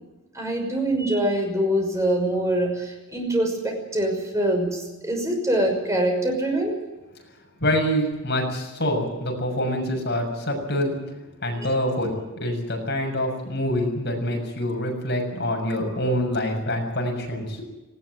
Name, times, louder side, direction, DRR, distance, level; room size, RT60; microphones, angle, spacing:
voice 1, 0.3-6.7 11.5-11.7, right 1 dB, 15° right, 2 dB, 6.0 m, -24 dB
voice 2, 7.6-11.0 11.4-17.6, equal, 50° left, 2 dB, 6.9 m, -26 dB
19.0 x 17.5 x 9.7 m, 1.1 s
head